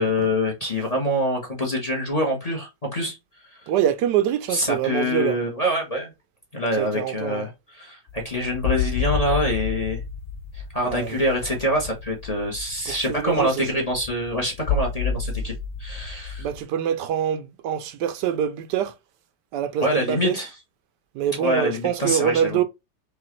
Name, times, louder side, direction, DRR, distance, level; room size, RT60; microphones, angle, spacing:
voice 1, 0.0-3.2 3.5-3.6 4.5-6.1 6.5-10.0 10.5-15.5 15.8-16.5 19.8-20.5 21.4-22.6, left 1 dB, 25° left, 0.9 m, -25 dB
voice 2, 3.7-5.4 6.8-7.5 10.8-11.2 12.9-13.8 16.4-18.9 19.5-20.4 21.1-22.6, right 9 dB, 80° right, 1.2 m, -25 dB
sound 1, 8.1-16.6, left 6 dB, 75° left, 0.7 m, -30 dB
5.0 x 2.6 x 3.0 m
omnidirectional pair, 1.8 m